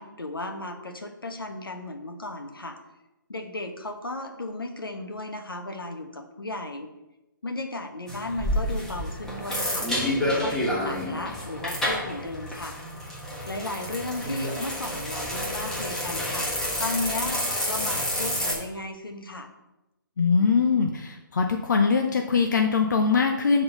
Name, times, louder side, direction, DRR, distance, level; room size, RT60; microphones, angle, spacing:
voice 1, 0.0-2.8 3.3-6.9 7.4-9.9 10.2-12.8 13.5-16.5 16.8-19.5, left 2 dB, 80° left, 5 dB, 1.1 m, -35 dB
sound 1, 8.1-18.5, left 1 dB, 5° left, 1.3 m, -29 dB
voice 2, 20.2-23.6, left 5 dB, 55° left, 4 dB, 0.6 m, -22 dB
6.7 x 3.8 x 5.4 m, 0.96 s
figure-of-eight pair, 135°, 12 cm